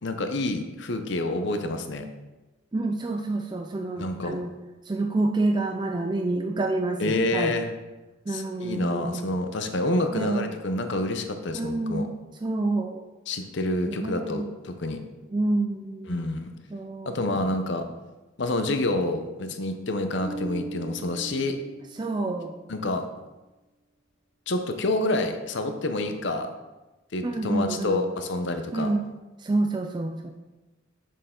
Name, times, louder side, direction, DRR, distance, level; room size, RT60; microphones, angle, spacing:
voice 1, 0.0-2.1 4.0-4.4 7.0-7.7 8.3-12.1 13.3-15.0 16.1-16.5 17.1-17.8 18.4-21.6 22.7-23.0 24.5-26.5 27.1-28.9, left 2 dB, 55° left, 7 dB, 0.7 m, -28 dB
voice 2, 2.7-4.5 4.9-7.6 8.3-9.3 10.1-10.5 11.5-12.1 12.4-13.0 13.9-14.5 15.3-16.2 16.7-17.1 22.0-22.6 27.2-28.0 28.7-29.1 29.4-30.3, right 2 dB, 20° right, 3 dB, 0.3 m, -28 dB
Bass guitar, 20.2-22.6, right 3 dB, 35° left, 1.5 m, -39 dB
6.7 x 6.4 x 3.8 m, 1.1 s
head